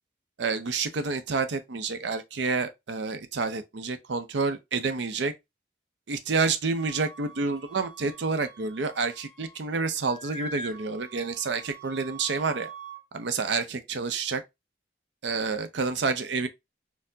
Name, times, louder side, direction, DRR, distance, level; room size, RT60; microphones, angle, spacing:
voice 1, 0.4-5.3 6.1-12.7 13.1-14.4 15.2-16.5, right 4 dB, 65° right, 0.5 m, -29 dB
Wind instrument woodwind instrument, 6.8-9.7 9.9-13.0, right 2 dB, 25° left, 0.9 m, -44 dB
4.3 x 2.0 x 2.6 m
head